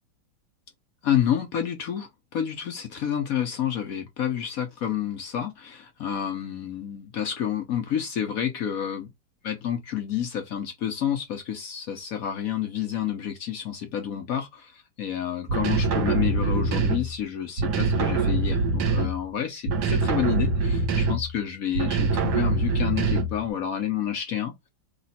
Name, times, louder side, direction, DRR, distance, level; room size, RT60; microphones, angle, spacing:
voice 1, 1.0-9.1 9.4-24.7, left 9 dB, 65° left, 0.9 m, -29 dB
sound 1, 15.5-17.2 17.6-19.3 19.7-21.4 21.7-23.5, right 3 dB, 60° right, 1.3 m, -24 dB
3.3 x 3.1 x 4.0 m
omnidirectional pair, 2.2 m